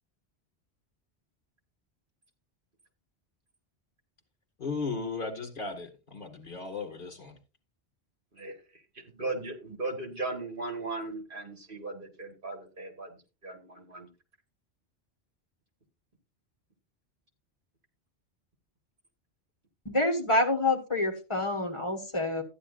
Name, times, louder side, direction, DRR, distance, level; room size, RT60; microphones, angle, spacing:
voice 1, 4.6-7.4, left 4 dB, 50° left, 2.3 m, -36 dB
voice 2, 9.1-14.1, right 3 dB, 55° right, 1.9 m, -37 dB
voice 3, 19.8-22.4, left 2 dB, 30° left, 1.6 m, -27 dB
13.5 x 9.9 x 2.6 m
omnidirectional pair, 1.1 m